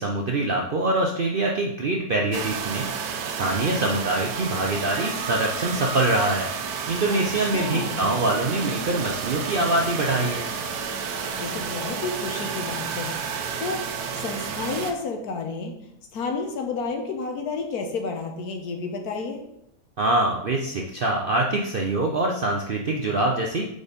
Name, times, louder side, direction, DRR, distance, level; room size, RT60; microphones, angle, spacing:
voice 1, 0.0-2.9 3.4-6.5 6.9-10.5 20.0-23.6, right 2 dB, 60° right, 0 dB, 0.6 m, -24 dB
sound 1, 2.3-14.9, right 6 dB, 80° right, 1.2 m, -31 dB
voice 2, 7.1-8.2 11.4-13.8 14.1-15.8 16.1-19.5, left 4 dB, 75° left, 4 dB, 1.4 m, -31 dB
4.8 x 4.2 x 5.1 m, 0.77 s
omnidirectional pair, 1.6 m